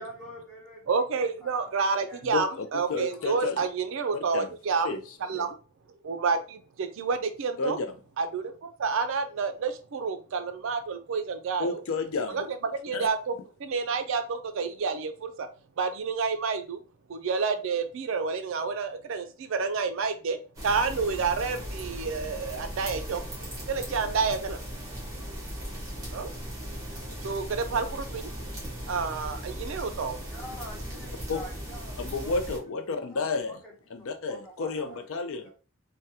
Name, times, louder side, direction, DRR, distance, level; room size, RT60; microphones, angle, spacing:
voice 1, 0.0-0.9 1.1-2.2 2.8-3.4 30.2-32.3 32.8-35.0 35.4-35.5, equal, 5° left, -4 dB, 0.9 m, -46 dB
voice 2, 0.9-4.9 5.2-5.6 6.0-7.8 8.2-11.8 12.3-15.5 15.8-16.8 17.1-23.2 23.7-24.6 26.1-26.3 27.2-28.3 28.9-30.2, right 5 dB, 65° right, 8 dB, 0.4 m, -29 dB
voice 3, 2.2-3.6 4.1-4.5 4.8-5.0 5.3-5.5 7.6-7.9 11.6-12.4 12.9-13.1 31.3-31.4 32.0-33.6 33.9-35.4, left 4 dB, 70° left, 8 dB, 0.4 m, -31 dB
sound 1, 20.5-32.6, equal, 15° right, 1.2 m, -38 dB
3.4 x 2.2 x 2.7 m, 0.36 s
head